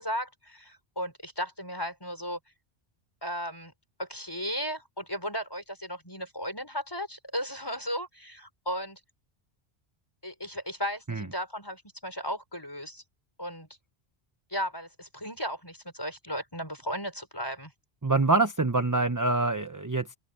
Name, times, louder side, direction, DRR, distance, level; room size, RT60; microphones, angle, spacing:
voice 1, 0.0-2.4 3.2-3.7 4.0-9.0 10.2-13.0 13.4-13.7 14.5-17.7, equal, 20° left, 4.8 m, -35 dB
voice 2, 18.0-20.1, right 3 dB, 20° right, 0.9 m, -25 dB
open air
omnidirectional pair, 1.1 m